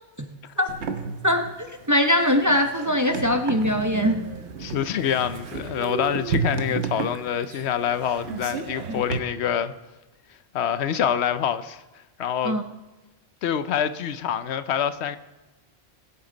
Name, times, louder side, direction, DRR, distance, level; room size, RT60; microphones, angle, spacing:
voice 1, 0.2-0.7 1.2-4.3 8.9-9.0 12.4-12.6, left 1 dB, 20° right, 0.6 m, -22 dB
sound 1, 0.7-9.2, right 5 dB, 85° right, 1.2 m, -32 dB
Train, 3.6-8.9, right 6 dB, 55° right, 1.0 m, -39 dB
voice 2, 4.6-9.7 10.5-11.8 12.2-12.6 13.4-15.2, left 9 dB, 80° left, 0.9 m, -26 dB
21.0 x 8.4 x 3.9 m
omnidirectional pair, 1.1 m